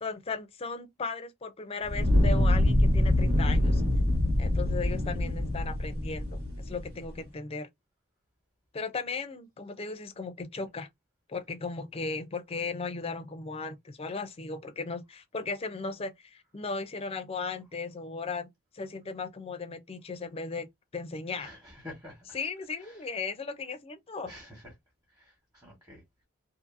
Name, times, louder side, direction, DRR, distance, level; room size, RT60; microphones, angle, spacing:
voice 1, 0.0-3.8 4.4-6.3 6.7-7.7 8.7-10.9 11.3-18.5 18.7-20.7 20.9-21.5 22.3-24.3, left 4 dB, 30° left, 0.4 m, -36 dB
Fire, 1.8-7.0, left 1 dB, 85° right, 1.5 m, -25 dB
voice 2, 21.4-22.3 22.8-23.0 24.2-24.7 25.2-26.0, left 1 dB, 15° right, 1.1 m, -48 dB
2.6 x 2.6 x 2.5 m
head